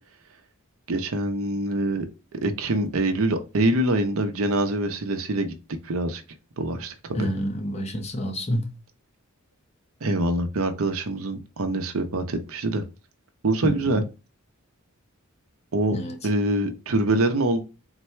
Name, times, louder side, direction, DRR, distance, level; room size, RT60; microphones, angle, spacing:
voice 1, 0.9-2.1 2.3-5.5 5.8-6.2 6.6-7.3 10.0-12.8 13.4-14.1 15.7-16.0 16.2-17.6, right 2 dB, 70° right, 0.7 m, -24 dB
voice 2, 7.1-8.7 13.6-14.0 15.9-16.2, equal, 30° left, 0.7 m, -28 dB
3.9 x 2.2 x 4.3 m
head